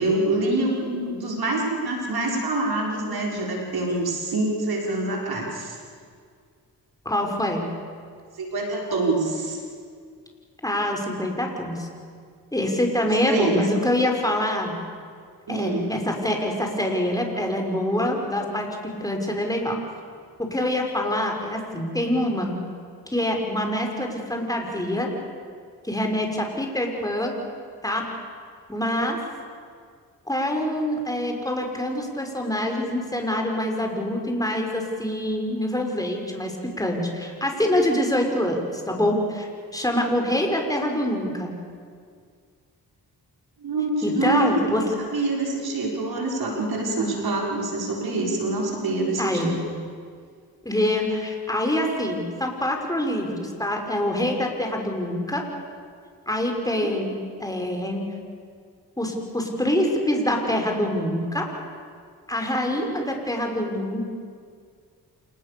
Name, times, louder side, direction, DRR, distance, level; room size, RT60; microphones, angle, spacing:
voice 1, 0.0-5.8 8.4-9.6 13.0-13.6 15.5-15.9 43.6-44.8 45.1-49.6 56.7-56.8 62.8-62.9, right 2 dB, 65° right, -1 dB, 5.9 m, -26 dB
voice 2, 7.1-7.6 10.6-11.9 12.5-14.8 15.5-18.7 19.0-19.7 20.4-22.6 23.1-25.1 25.8-27.3 27.8-28.0 28.7-29.2 30.3-41.6 44.0-44.8 49.2-49.5 50.6-55.4 56.3-58.0 59.0-61.5 62.3-64.0, left 1 dB, 10° left, 2 dB, 5.6 m, -25 dB
28.0 x 20.0 x 7.0 m, 2.1 s
supercardioid pair, 50°, 40 cm